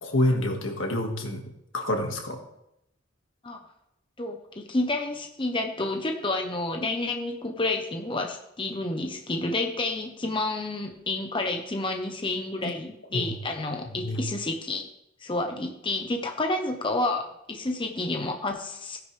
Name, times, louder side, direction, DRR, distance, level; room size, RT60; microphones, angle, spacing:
voice 1, 0.0-2.4 13.1-13.3 13.9-14.2, left 1 dB, 85° left, 2 dB, 2.1 m, -28 dB
voice 2, 4.2-14.9 15.2-19.0, left 2 dB, 25° left, 4 dB, 1.0 m, -30 dB
16.5 x 10.0 x 3.5 m, 0.80 s
head